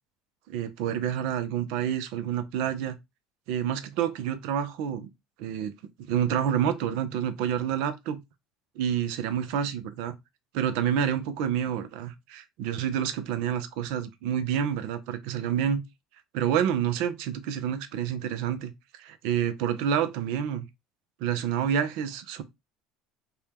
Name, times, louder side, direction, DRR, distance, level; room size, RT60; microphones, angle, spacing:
voice 1, 0.5-3.0 3.5-5.1 5.4-5.7 6.0-8.2 8.8-10.1 10.5-15.8 16.3-20.7 21.2-22.4, right 9 dB, 70° right, 0.5 m, -28 dB
2.7 x 2.2 x 3.4 m
hypercardioid pair, 75°, 0 cm